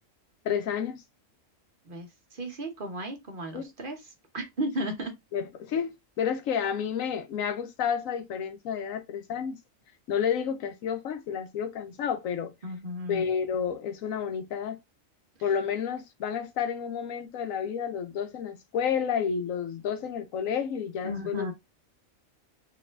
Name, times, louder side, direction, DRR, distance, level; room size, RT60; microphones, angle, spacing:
voice 1, 0.4-1.0 3.5-3.7 5.3-9.6 10.1-12.5 13.1-14.8 15.4-21.5, left 7 dB, 90° left, 1.1 m, -30 dB
voice 2, 1.9-4.0 4.3-5.1 12.6-13.2 21.0-21.5, equal, 45° right, 1.1 m, -34 dB
4.2 x 3.2 x 2.4 m
omnidirectional pair, 1.4 m